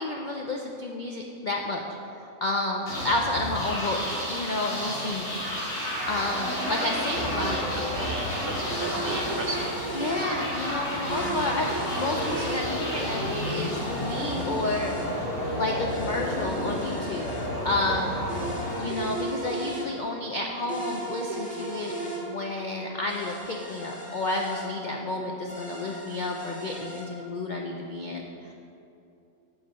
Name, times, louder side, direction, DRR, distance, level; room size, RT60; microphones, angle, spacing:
voice 1, 0.0-1.8 2.2-7.6 9.9-14.9 15.5-17.3 17.6-18.2 18.8-21.9 22.2-28.5, left 2 dB, 80° left, 1 dB, 0.4 m, -31 dB
sound 1, 2.9-19.6, left 1 dB, 50° left, 2.2 m, -31 dB
voice 2, 6.7-9.7, right 2 dB, 55° right, 1 dB, 0.6 m, -35 dB
sound 2, 8.7-10.3 11.1-12.6 13.5-15.1 15.9-17.5 18.3-19.9 20.7-22.2 23.1-24.7 25.5-27.1, right 2 dB, 5° left, 1.4 m, -36 dB
8.2 x 4.8 x 6.8 m, 2.8 s
omnidirectional pair, 1.6 m